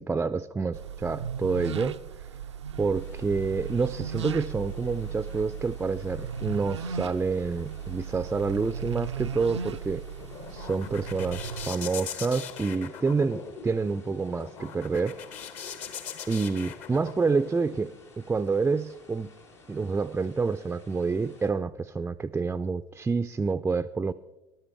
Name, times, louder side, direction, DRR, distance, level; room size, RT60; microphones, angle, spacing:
voice 1, 0.0-2.0 2.8-10.0 10.5-15.2 16.3-19.3 19.7-24.1, right 4 dB, 10° right, 10 dB, 0.3 m, -28 dB
sound 1, 0.7-11.7, right 7 dB, 80° right, 0.4 m, -37 dB
sound 2, 2.9-21.5, left 3 dB, 85° left, 2.2 m, -54 dB
sound 3, 10.0-17.8, left 7 dB, 50° left, 1.0 m, -41 dB
19.0 x 12.0 x 3.5 m, 1.0 s
figure-of-eight pair, 65°, 15 cm